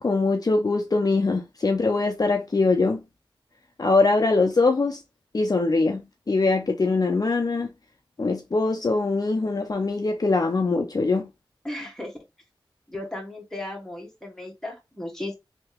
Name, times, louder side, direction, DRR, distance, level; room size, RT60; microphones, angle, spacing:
voice 1, 0.0-3.0 3.8-5.0 5.3-6.0 6.3-7.7 8.2-11.3, left 3 dB, 45° left, 0.6 m, -22 dB
voice 2, 11.6-12.1 12.9-15.3, left 1 dB, 5° left, 1.6 m, -35 dB
3.3 x 2.8 x 3.5 m
wide cardioid pair, 60°, 9 cm